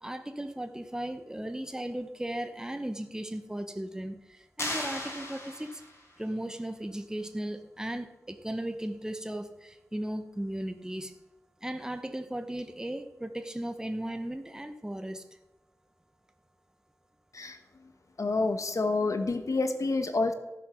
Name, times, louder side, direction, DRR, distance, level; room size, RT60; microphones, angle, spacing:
voice 1, 0.0-5.8 6.2-11.1 11.6-15.2, right 1 dB, 10° right, 8 dB, 0.9 m, -36 dB
sound 1, 4.6-6.1, left 1 dB, 50° left, 4.4 m, -36 dB
voice 2, 18.2-20.3, left 3 dB, 70° left, 8 dB, 1.0 m, -28 dB
14.5 x 7.2 x 6.3 m, 1.0 s
wide cardioid pair, 80°, 6 cm